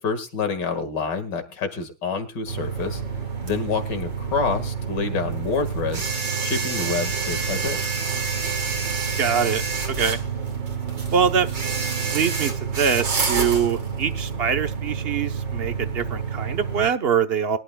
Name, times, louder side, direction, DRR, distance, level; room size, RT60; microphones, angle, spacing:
voice 1, 0.0-3.0 3.4-6.1 6.4-7.8, left 5 dB, 65° left, 8 dB, 2.5 m, -27 dB
sound 1, 2.5-16.9, right 5 dB, 80° right, 3.2 m, -28 dB
voice 2, 9.2-9.6 9.9-10.2 11.1-11.5 12.1-17.6, right 7 dB, 45° right, 8 dB, 0.9 m, -23 dB
22.0 x 11.5 x 2.3 m, 0.29 s
omnidirectional pair, 2.0 m